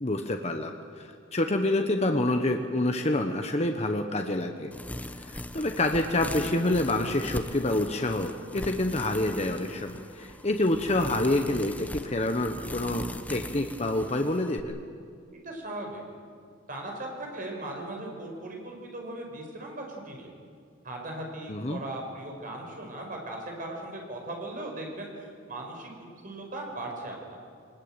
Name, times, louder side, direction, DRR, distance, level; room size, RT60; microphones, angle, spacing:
voice 1, 0.0-4.7 5.2-14.8 21.5-21.8, left 1 dB, 35° left, 5 dB, 1.2 m, -27 dB
sound 1, 4.7-14.6, left 1 dB, 10° left, 0.9 m, -40 dB
voice 2, 15.4-16.0 16.7-20.4 20.8-27.4, right 1 dB, 45° right, 1 dB, 5.4 m, -38 dB
23.0 x 20.5 x 9.0 m, 2.3 s
head